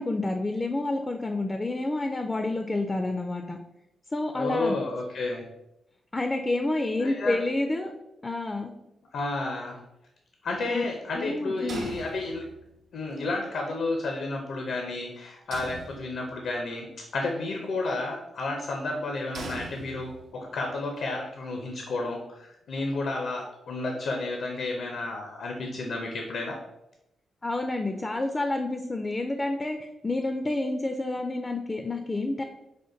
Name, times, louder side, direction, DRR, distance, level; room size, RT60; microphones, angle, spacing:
voice 1, 0.0-3.6 4.1-4.8 6.1-7.9 8.2-8.7 10.7-10.8 11.1-11.9 27.4-32.4, left 2 dB, 25° left, 5 dB, 0.3 m, -29 dB
voice 2, 4.3-5.4 7.0-7.4 9.1-9.8 10.4-12.4 12.9-26.6, left 2 dB, 75° left, 2 dB, 0.6 m, -31 dB
sound 1, 11.7-12.8 15.5-16.5 19.3-20.5, right 2 dB, 75° right, 0.6 m, -41 dB
5.0 x 2.2 x 3.8 m, 0.90 s
cardioid pair, 95°, 0 cm